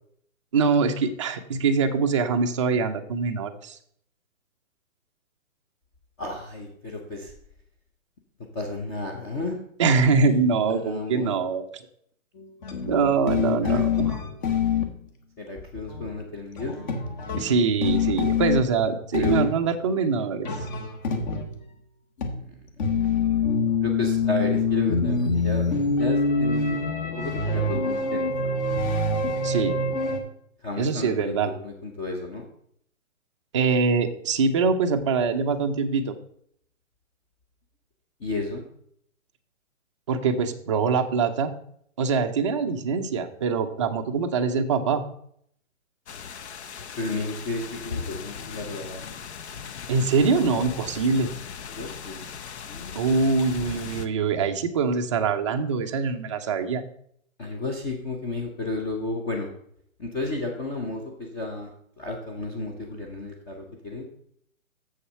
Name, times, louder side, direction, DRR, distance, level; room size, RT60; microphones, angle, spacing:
voice 1, 0.5-3.7 9.8-11.8 12.9-14.1 17.4-20.5 29.4-29.8 30.8-31.5 33.5-36.1 40.1-41.5 42.0-45.0 49.9-51.3 53.0-56.8, right 5 dB, 25° right, 5 dB, 0.5 m, -23 dB
voice 2, 6.2-7.3 8.5-9.6 10.1-11.3 13.6-13.8 15.4-16.8 19.2-19.4 22.4-22.5 23.8-28.6 30.6-32.5 38.2-38.6 47.0-49.1 51.7-52.2 52.6-53.1 57.4-59.5 60.0-61.7 62.0-64.1, left 2 dB, 15° left, 0 dB, 0.8 m, -33 dB
sound 1, 12.4-14.9 15.6-15.7 15.9-16.2 16.6-18.8 19.1-19.7 20.4-21.6 22.2-30.2, left 4 dB, 30° left, 1.4 m, -25 dB
sound 2, 46.1-54.1, left 6 dB, 50° left, 0.8 m, -38 dB
7.2 x 6.8 x 5.6 m, 0.68 s
hypercardioid pair, 140°, 42 cm